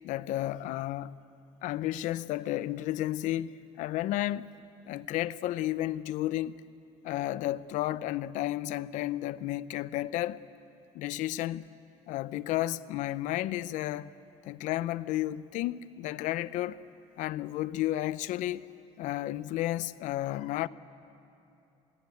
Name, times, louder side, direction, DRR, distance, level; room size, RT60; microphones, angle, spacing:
voice 1, 0.0-1.2 1.6-4.5 4.9-6.6 7.0-10.4 10.9-11.7 12.1-14.1 14.4-16.8 17.2-18.7 19.0-20.7, left 14 dB, 70° left, 0.6 m, -32 dB
27.5 x 18.0 x 9.3 m
cardioid pair, 170°, 14 cm